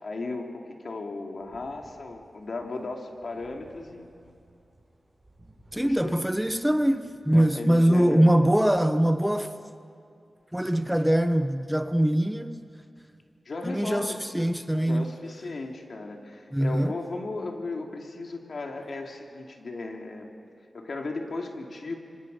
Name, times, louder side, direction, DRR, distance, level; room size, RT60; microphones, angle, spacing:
voice 1, 0.0-4.1 5.7-6.2 7.3-8.3 13.4-14.2 14.8-20.3 20.7-22.0, left 3 dB, 65° left, 2.7 m, -36 dB
sound 1, 1.2-7.5, right 1 dB, 30° right, 6.7 m, -58 dB
voice 2, 5.7-9.5 10.5-12.6 13.6-15.1 16.5-16.9, right 1 dB, 5° right, 1.0 m, -23 dB
27.0 x 24.0 x 5.4 m
cardioid pair, 50°, 0 cm